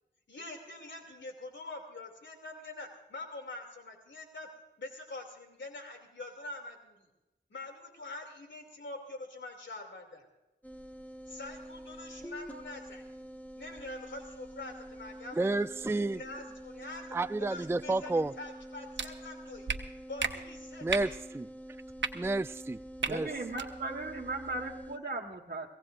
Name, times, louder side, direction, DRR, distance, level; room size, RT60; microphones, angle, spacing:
voice 1, 0.3-4.5 4.8-7.1 7.5-10.3 11.3-13.0 13.6-15.7 16.1-19.7 20.1-20.8, left 2 dB, 85° left, 3 dB, 2.7 m, -45 dB
sound 1, 10.6-25.0, equal, 10° left, 1.0 m, -47 dB
voice 2, 15.4-16.2 17.1-18.3 20.8-21.5 22.1-22.8 23.1-23.3, right 2 dB, 15° right, 12 dB, 0.4 m, -30 dB
sound 2, 19.0-19.1 19.7-19.8 20.2-20.3 20.9-21.1 22.0-22.1 23.0-23.1 23.5-23.7, right 5 dB, 75° right, 1.0 m, -32 dB
voice 3, 23.1-25.7, right 3 dB, 50° right, -2 dB, 1.6 m, -37 dB
23.5 x 17.0 x 2.5 m, 0.98 s
cardioid pair, 45°, 19 cm